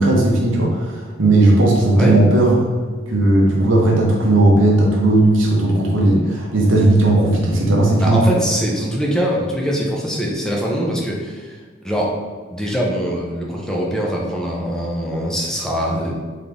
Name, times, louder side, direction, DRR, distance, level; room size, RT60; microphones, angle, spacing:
voice 1, 0.0-2.7 3.1-8.2, right 2 dB, 80° right, -2 dB, 1.0 m, -15 dB
voice 2, 8.0-11.6 11.8-12.1 12.5-16.1, equal, 5° left, -3 dB, 0.7 m, -22 dB
3.8 x 3.8 x 3.5 m, 1.5 s
head